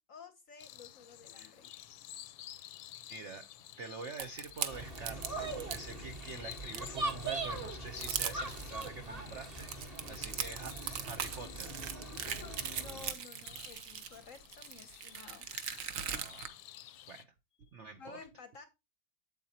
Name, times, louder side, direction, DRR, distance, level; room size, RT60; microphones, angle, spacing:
voice 1, 0.0-1.7 10.0-10.4 12.1-15.5 18.0-18.6, left 5 dB, 55° left, 9 dB, 0.9 m, -53 dB
sound 1, 0.6-17.2, left 12 dB, 75° left, 1.3 m, -52 dB
voice 2, 3.1-3.5 3.8-11.8 16.0-16.6 17.1-18.2, right 4 dB, 85° right, 7 dB, 0.6 m, -46 dB
sound 2, 4.2-5.8 6.3-7.1 7.6-7.7 7.9-8.9 9.4-16.5, right 8 dB, 55° right, 0.9 m, -40 dB
sound 3, 4.7-13.1, right 2 dB, 25° right, 1.1 m, -41 dB
8.1 x 7.8 x 2.8 m, 0.24 s
omnidirectional pair, 2.2 m